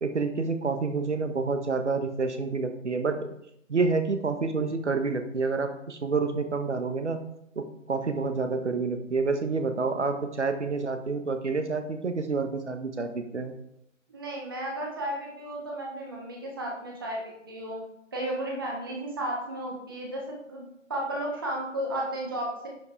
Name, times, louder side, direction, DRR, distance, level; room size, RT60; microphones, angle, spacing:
voice 1, 0.0-3.3 3.7-7.2 7.6-13.5, right 4 dB, 60° right, 7 dB, 1.1 m, -28 dB
voice 2, 14.1-17.8 18.1-22.7, right 1 dB, 15° right, -1 dB, 1.0 m, -33 dB
10.5 x 5.4 x 3.5 m, 0.75 s
figure-of-eight pair, 160°, 39 cm